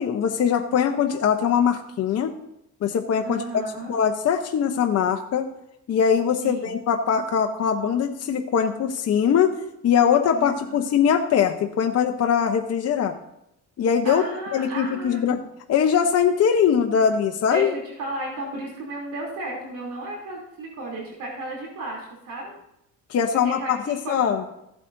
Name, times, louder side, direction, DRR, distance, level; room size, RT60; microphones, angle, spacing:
voice 1, 0.0-2.3 2.8-5.5 5.9-9.6 9.8-13.1 13.8-14.2 14.5-15.4 15.7-17.7 23.1-24.4, left 7 dB, 50° left, 4 dB, 0.9 m, -22 dB
voice 2, 3.2-3.9 6.4-6.7 10.3-10.9 14.0-15.4 17.5-22.5 23.3-24.3, right 2 dB, 70° right, -2 dB, 3.2 m, -34 dB
15.5 x 8.2 x 2.7 m, 0.83 s
cardioid pair, 115°, 32 cm